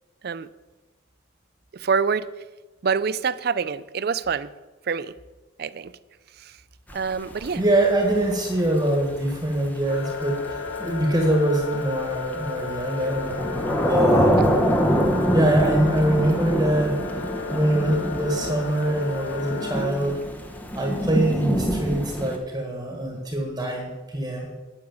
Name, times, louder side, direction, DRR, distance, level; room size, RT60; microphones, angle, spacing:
voice 1, 1.7-2.3 2.8-4.5 4.9-5.1 5.6-5.9 6.4-6.5 6.9-7.6 14.4-14.6, right 5 dB, 50° right, 16 dB, 0.4 m, -26 dB
Thunder / Rain, 6.9-22.4, equal, 10° left, 1.0 m, -26 dB
voice 2, 7.5-13.4 13.8-14.3 15.3-17.0 17.5-20.2 20.7-24.5, right 1 dB, 20° right, 1 dB, 1.6 m, -23 dB
sound 1, 9.9-19.9, left 5 dB, 70° left, 1.0 m, -34 dB
9.5 x 6.5 x 8.6 m, 1.2 s
head